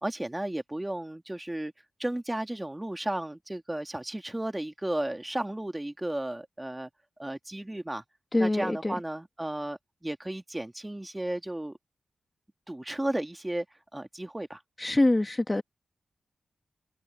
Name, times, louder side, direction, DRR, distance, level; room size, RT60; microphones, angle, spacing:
voice 1, 0.0-1.7 2.0-6.9 7.2-8.0 8.4-11.8 12.7-13.7 13.9-14.6, right 1 dB, 15° right, 2.5 m, -34 dB
voice 2, 8.3-8.9 14.8-15.6, left 2 dB, 20° left, 1.3 m, -24 dB
cardioid pair, 75°, 0 cm